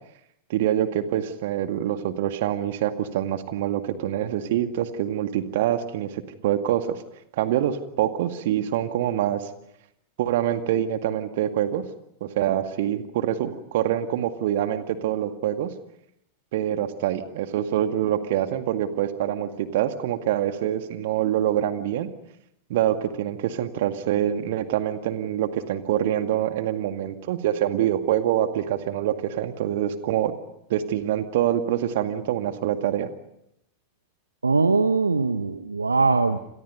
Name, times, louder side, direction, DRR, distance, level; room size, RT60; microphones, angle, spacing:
voice 1, 0.5-7.0 7.4-9.5 10.2-11.8 12.2-15.7 16.5-22.1 22.7-30.4 30.7-33.1, right 11 dB, 55° right, 9 dB, 2.0 m, -25 dB
voice 2, 34.4-36.4, right 4 dB, 80° right, 11 dB, 1.0 m, -21 dB
29.5 x 26.5 x 5.3 m, 0.78 s
figure-of-eight pair, 90°, 0 cm